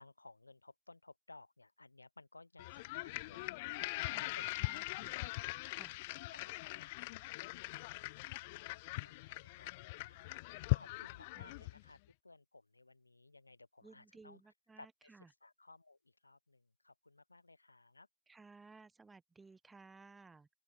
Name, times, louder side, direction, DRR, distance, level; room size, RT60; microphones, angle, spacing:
voice 1, 0.0-3.5 4.1-4.4 4.7-5.0 5.9-6.4 6.8-6.9 7.2-7.5 7.9-12.0 12.2-14.4 14.8-15.1 15.4-18.1, left 2 dB, 80° left, 1.1 m, -60 dB
sound 1, 2.6-11.9, left 23 dB, 40° left, 0.3 m, -41 dB
voice 2, 3.8-5.2 5.7-6.0 7.1-7.3 11.3-11.5 13.8-15.3 18.3-20.5, right 4 dB, 10° right, 1.2 m, -59 dB
open air
figure-of-eight pair, 105°, 0 cm